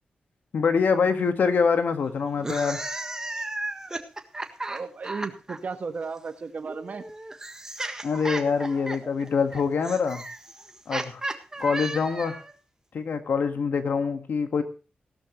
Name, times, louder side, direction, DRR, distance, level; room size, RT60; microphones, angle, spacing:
voice 1, 0.5-2.9 8.0-10.2 10.9-11.2 11.6-12.3 12.9-14.6, left 5 dB, 70° left, 7 dB, 1.8 m, -25 dB
sound 1, 2.3-5.6 6.6-12.5, right 2 dB, 20° right, 1.6 m, -34 dB
voice 2, 4.7-7.0, right 4 dB, 50° right, 8 dB, 1.5 m, -34 dB
16.5 x 12.5 x 3.2 m, 0.33 s
cardioid pair, 85°, 3 cm